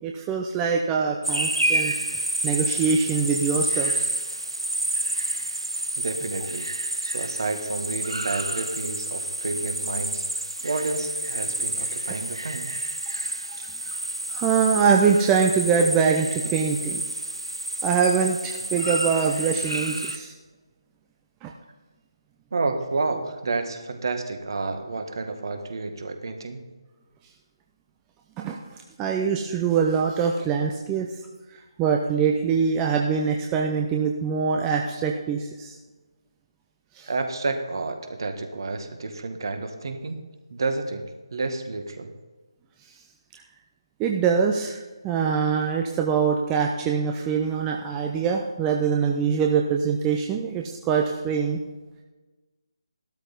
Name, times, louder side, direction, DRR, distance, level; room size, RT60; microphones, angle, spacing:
voice 1, 0.0-1.9 2.4-4.0 13.9-14.0 14.3-17.0 17.8-20.3 21.4-21.5 28.4-31.1 31.8-35.8 37.0-37.1 43.3-43.4 44.0-51.6, right 6 dB, 15° right, 1 dB, 0.7 m, -23 dB
sound 1, 1.2-20.2, right 1 dB, 85° right, 1.2 m, -29 dB
voice 2, 6.0-6.7 7.0-10.2 10.6-12.7 22.5-26.6 37.1-40.2 40.5-41.0 41.3-42.1, right 3 dB, 55° right, 6 dB, 1.8 m, -30 dB
14.5 x 12.5 x 4.1 m, 1.2 s
figure-of-eight pair, 150°, 3 cm